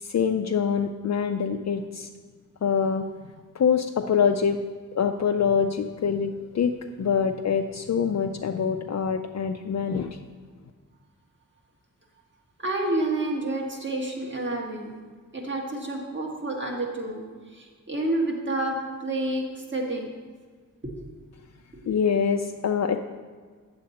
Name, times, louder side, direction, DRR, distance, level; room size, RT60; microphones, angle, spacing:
voice 1, 0.0-2.1 2.6-3.1 3.5-4.6 4.9-10.2 21.9-23.0, left 6 dB, 50° left, 5 dB, 0.5 m, -25 dB
voice 2, 12.6-14.9 15.3-17.2 17.5-19.4 19.7-20.1 20.8-20.9 21.8-21.9, right 2 dB, 35° right, 0 dB, 1.6 m, -29 dB
8.8 x 7.5 x 4.2 m, 1.6 s
wide cardioid pair, 90°, 34 cm